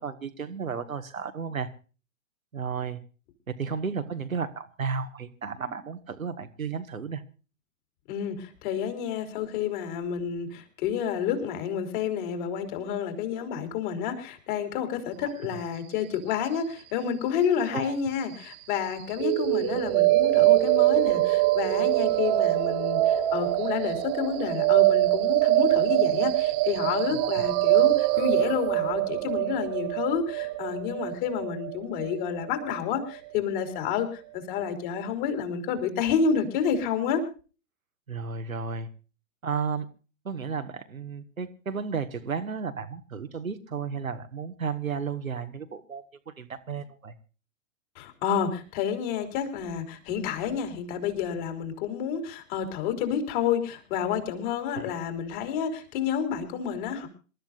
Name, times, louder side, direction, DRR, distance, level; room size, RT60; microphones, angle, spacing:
voice 1, 0.0-1.7 2.5-3.0 3.5-7.2 15.2-15.3 17.7-18.0 27.1-27.3 38.1-38.9 39.4-39.9 40.3-47.2, right 6 dB, 75° right, 8 dB, 1.8 m, -33 dB
voice 2, 8.1-37.2 48.0-57.1, left 7 dB, 35° left, 6 dB, 3.9 m, -29 dB
sound 1, 19.2-33.1, right 17 dB, 25° right, 1.3 m, -24 dB
27.0 x 13.5 x 2.6 m, 0.36 s
figure-of-eight pair, 115°, 41 cm